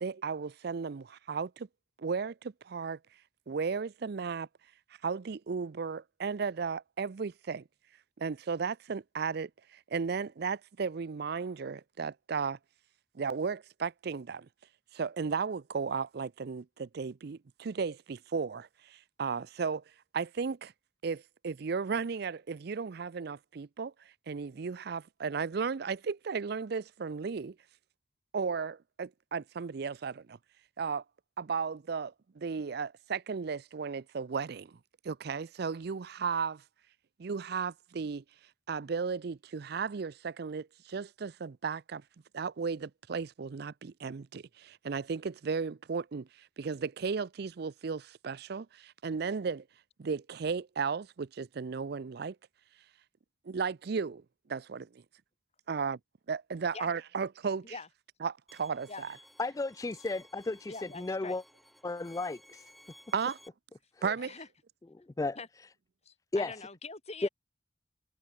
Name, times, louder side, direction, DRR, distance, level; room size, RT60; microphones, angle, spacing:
voice 1, 0.0-1.7 2.0-3.0 3.5-4.5 5.0-7.6 8.2-12.6 13.2-14.5 14.9-19.8 20.1-20.7 21.0-23.9 24.3-27.6 28.3-30.4 30.8-31.0 31.4-34.7 35.0-36.6 37.2-38.2 38.7-42.0 42.3-49.6 50.0-52.4 53.5-54.2 54.5-54.9 55.7-56.0 56.3-57.7 58.2-59.2 63.1-63.4 64.0-64.3, right 5 dB, 55° right, 0.5 m, -35 dB
Bowed string instrument, 58.5-63.5, equal, ahead, 7.5 m, -58 dB
voice 2, 59.4-61.4 61.8-62.7 64.0-64.1 64.9-65.4 66.3-66.6 67.2-67.3, left 2 dB, 20° left, 0.3 m, -34 dB
voice 3, 60.7-61.4 64.2-64.5 65.4-65.5 66.1-67.3, left 4 dB, 35° left, 3.7 m, -44 dB
head